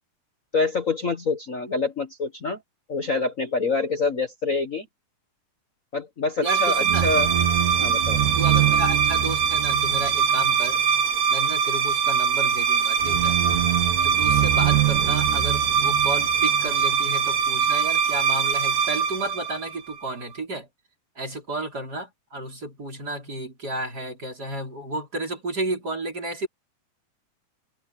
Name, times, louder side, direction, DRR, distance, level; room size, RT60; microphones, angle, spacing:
voice 1, 0.5-2.6 2.9-4.9 5.9-7.3 7.8-8.2, left 4 dB, 65° left, 0.8 m, -26 dB
voice 2, 6.4-7.1 7.8-7.9 8.4-10.8 11.3-13.4 14.0-20.7 21.2-26.5, right 2 dB, 25° right, 5.2 m, -32 dB
sound 1, 6.5-20.1, right 7 dB, 65° right, 2.6 m, -22 dB
omnidirectional pair, 4.0 m